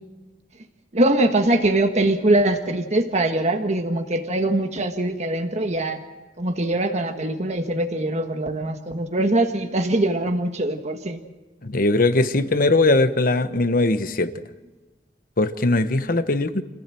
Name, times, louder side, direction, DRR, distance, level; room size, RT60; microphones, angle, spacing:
voice 1, 0.9-6.0 6.4-11.2, right 1 dB, 40° right, 5 dB, 1.5 m, -22 dB
voice 2, 11.6-14.3 15.4-16.6, left 2 dB, 55° left, 11 dB, 1.2 m, -20 dB
26.5 x 15.5 x 7.7 m, 1.2 s
head